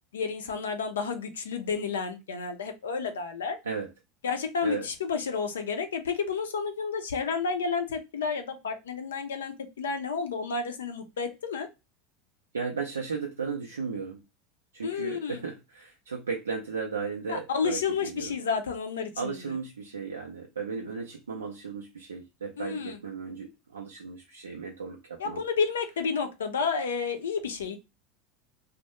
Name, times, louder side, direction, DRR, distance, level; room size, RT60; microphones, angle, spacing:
voice 1, 0.1-3.6 4.2-11.7 14.8-15.4 17.3-19.4 22.6-23.0 25.2-27.8, left 5 dB, 80° left, 0.4 m, -31 dB
voice 2, 12.5-14.2 14.7-18.4 19.2-25.4, right 5 dB, 90° right, 0.3 m, -35 dB
2.2 x 2.0 x 2.9 m
hypercardioid pair, 85°, 0 cm